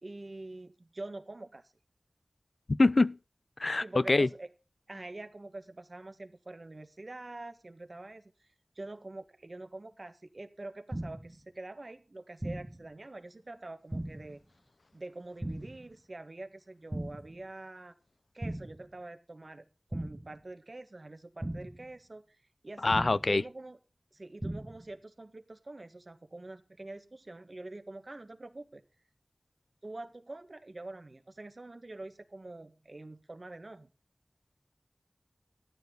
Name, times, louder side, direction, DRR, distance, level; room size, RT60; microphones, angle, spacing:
voice 1, 0.0-1.6 3.8-4.5 4.9-8.5 8.7-14.4 14.9-18.0 18.3-22.4 22.6-23.8 24.1-28.8 29.8-33.9, right 2 dB, 55° right, 1.7 m, -45 dB
voice 2, 2.8-3.2 3.6-4.3 22.8-23.4, left 2 dB, 70° left, 0.5 m, -24 dB
sound 1, 10.9-11.4 12.4-12.9 13.9-14.4 15.4-15.9 16.9-17.4 18.4-18.9 19.9-20.4 21.4-21.9 22.9-23.4 24.4-24.9, right 1 dB, 25° right, 1.1 m, -38 dB
13.5 x 9.4 x 3.9 m
wide cardioid pair, 55°, 0 cm